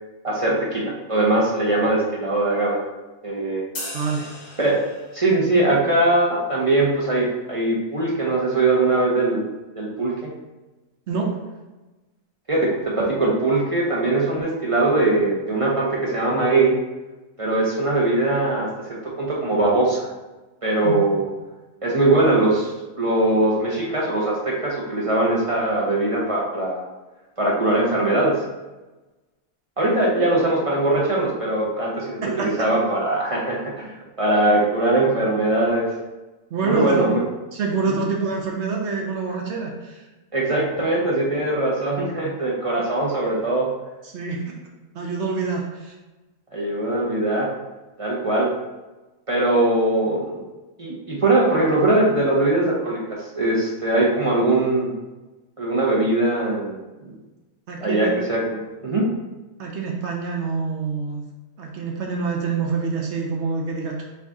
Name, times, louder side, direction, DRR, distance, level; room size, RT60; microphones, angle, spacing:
voice 1, 0.2-2.8 3.2-3.6 4.6-4.8 5.1-9.4 9.8-10.3 12.5-16.7 17.4-20.1 20.6-21.3 21.8-22.7 23.0-26.8 27.4-28.4 29.8-35.9 36.6-37.2 37.9-38.0 40.3-43.7 46.5-47.5 48.0-48.5 49.3-50.4 50.8-54.9 55.6-56.8 57.8-59.1, right 2 dB, 40° right, -5 dB, 0.5 m, -21 dB
sound 1, 3.8-5.4, left 2 dB, 55° left, 1.4 m, -36 dB
voice 2, 3.9-4.3 11.1-11.3 20.8-21.0 32.2-32.7 36.5-37.1 37.5-40.1 44.0-44.4 44.9-45.9 57.7-58.1 59.6-61.2 61.6-64.0, right 4 dB, 60° right, 0 dB, 0.8 m, -26 dB
4.6 x 2.8 x 3.5 m, 1.1 s
omnidirectional pair, 1.5 m